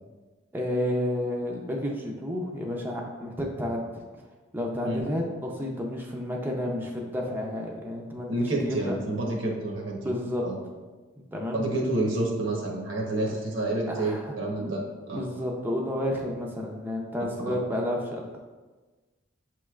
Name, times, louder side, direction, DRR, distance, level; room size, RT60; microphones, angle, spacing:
voice 1, 0.5-4.0 4.5-9.0 10.0-10.4 11.3-11.6 13.3-13.4 13.9-14.3 14.6-14.7 15.1-18.4, left 1 dB, 10° right, -1 dB, 0.4 m, -31 dB
voice 2, 8.3-10.1 10.4-10.6 11.5-15.2 17.4-17.5, right 2 dB, 85° right, -1 dB, 0.9 m, -29 dB
6.5 x 3.1 x 2.3 m, 1.3 s
head